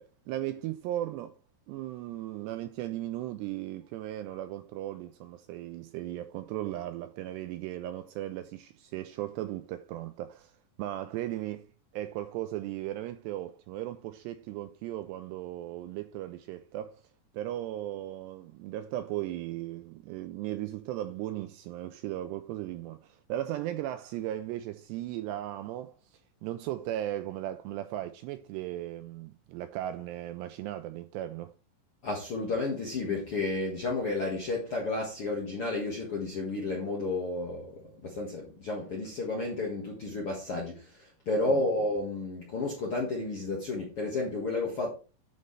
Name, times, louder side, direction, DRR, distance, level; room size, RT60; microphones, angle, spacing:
voice 1, 0.0-1.4 1.7-10.5 10.8-11.7 11.9-17.0 17.3-31.5 41.5-41.6, right 13 dB, 85° right, 2.4 m, -37 dB
voice 2, 32.0-44.9, left 2 dB, 70° left, 1.3 m, -32 dB
11.5 x 5.4 x 3.2 m
omnidirectional pair, 5.3 m